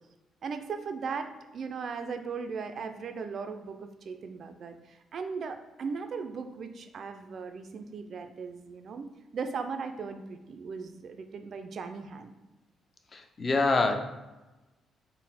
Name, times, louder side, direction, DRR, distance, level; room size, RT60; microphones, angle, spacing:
voice 1, 0.4-9.1 9.3-12.3, right 5 dB, 55° right, 7 dB, 0.3 m, -38 dB
voice 2, 13.1-14.0, left 3 dB, 35° left, 5 dB, 0.5 m, -25 dB
4.0 x 2.1 x 4.0 m, 1.1 s
cardioid pair, 90°, 0 cm